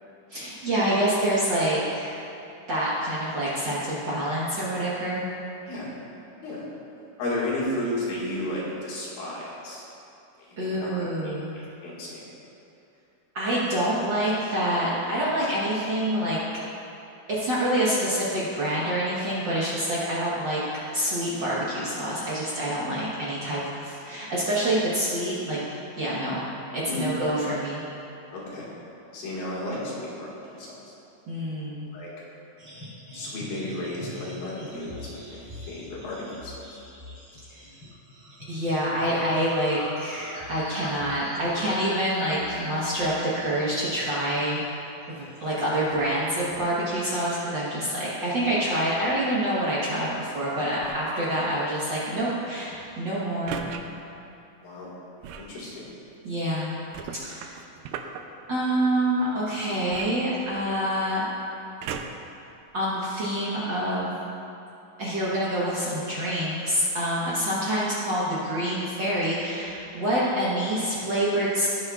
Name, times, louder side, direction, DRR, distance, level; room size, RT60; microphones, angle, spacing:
voice 1, 0.3-2.1 2.7-5.3 10.6-11.5 13.3-16.4 17.3-20.6 20.9-25.6 26.0-26.5 26.7-27.8 31.3-31.9 38.5-44.6 45.1-53.7 56.2-56.7 57.1-57.5 58.5-61.3 62.7-64.1 65.0-71.7, right 1 dB, 65° right, -8 dB, 1.1 m, -26 dB
voice 2, 7.2-9.8 10.4-11.3 11.8-12.3 26.9-27.1 28.3-28.7 29.1-30.7 31.9-32.1 33.1-35.0 35.3-35.4 35.7-36.5 54.6-54.9 55.4-55.9, left 1 dB, 85° left, -6 dB, 3.6 m, -33 dB
sound 1, 32.6-44.3 44.6-44.9 45.3-46.8 47.1-47.9 48.4-48.6 48.9-49.3 49.6-49.7 50.0-50.1 50.3-51.7, left 1 dB, 35° right, 0.7 m, -43 dB
sound 2, 50.8-51.2 53.5-53.8 55.2-55.6 56.9-58.2 59.9-60.9 61.8-62.3 63.0-63.1, right 8 dB, 90° right, 2.4 m, -37 dB
17.5 x 6.4 x 2.4 m, 2.9 s
omnidirectional pair, 4.0 m